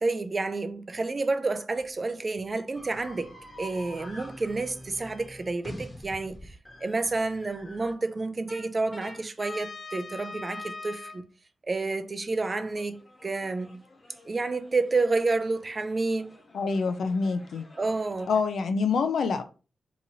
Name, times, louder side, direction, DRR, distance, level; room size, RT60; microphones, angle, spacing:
voice 1, 0.0-11.3 11.6-13.8 14.3-16.3 17.8-18.3, right 3 dB, 30° right, 0.4 m, -30 dB
sound 1, 2.7-7.9 8.5-11.2 12.7-18.5, left 2 dB, 20° left, 1.0 m, -45 dB
voice 2, 16.5-17.7 18.3-19.4, left 5 dB, 75° left, 0.5 m, -26 dB
3.8 x 2.9 x 2.7 m
wide cardioid pair, 110°, 0 cm